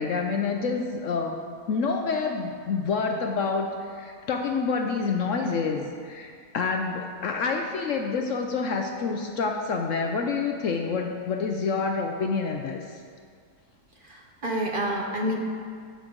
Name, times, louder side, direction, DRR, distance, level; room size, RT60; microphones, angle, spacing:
voice 1, 0.0-1.4 1.7-12.8, left 4 dB, 65° left, 3 dB, 0.9 m, -28 dB
voice 2, 14.0-15.4, equal, 40° right, -1 dB, 0.9 m, -28 dB
13.5 x 6.0 x 3.8 m, 2.1 s
omnidirectional pair, 1.7 m